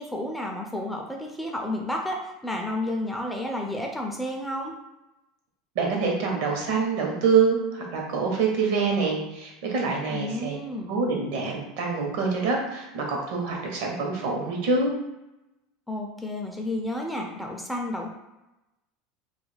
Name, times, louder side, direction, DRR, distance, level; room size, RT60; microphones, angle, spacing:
voice 1, 0.0-4.7 10.1-10.9 15.9-18.2, left 1 dB, 5° left, 0 dB, 0.4 m, -31 dB
voice 2, 5.8-10.6 10.9-14.9, right 4 dB, 70° right, 0 dB, 0.8 m, -25 dB
2.3 x 2.1 x 3.2 m, 0.96 s
supercardioid pair, 130°, 0 cm